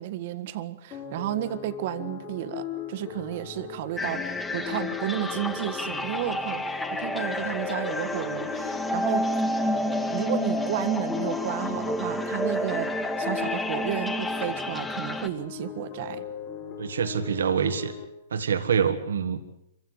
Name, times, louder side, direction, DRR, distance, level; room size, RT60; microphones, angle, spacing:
voice 1, 0.0-6.6 6.9-9.3 9.8-12.9 13.2-16.2, right 13 dB, 55° right, 11 dB, 1.7 m, -32 dB
sound 1, 0.9-18.0, left 8 dB, 35° left, 6.5 m, -39 dB
sound 2, 4.0-15.3, left 1 dB, 10° left, 1.5 m, -30 dB
voice 2, 16.8-17.9 18.3-19.5, right 7 dB, 85° right, 9 dB, 1.9 m, -26 dB
25.5 x 16.0 x 8.1 m, 0.80 s
hypercardioid pair, 125°, 0 cm